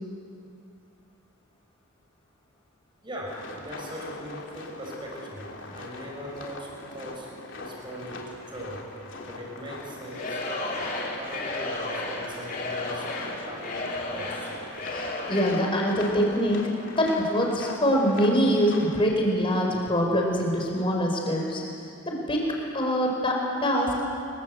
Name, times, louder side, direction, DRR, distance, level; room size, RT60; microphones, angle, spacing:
voice 1, 3.0-7.3 7.6-8.9 9.3-10.4 10.8-13.1 13.4-14.5, equal, 20° right, -2 dB, 6.0 m, -40 dB
sound 1, 3.3-19.1, left 2 dB, 55° left, 3.2 m, -42 dB
Singing / Crowd, 10.1-15.7, left 2 dB, 40° left, 3.6 m, -33 dB
voice 2, 14.9-16.7 17.0-21.6 22.1-22.4 22.7-23.9, equal, 25° left, 0 dB, 4.8 m, -24 dB
25.5 x 23.0 x 8.3 m, 2.6 s
head